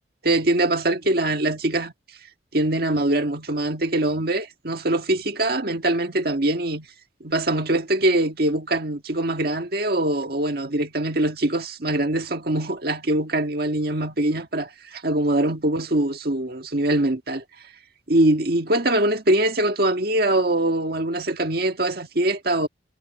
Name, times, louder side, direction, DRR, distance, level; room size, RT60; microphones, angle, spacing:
voice 1, 0.2-1.9 2.5-6.9 7.2-17.4 18.1-22.7, right 1 dB, 55° right, 1.8 m, -23 dB
head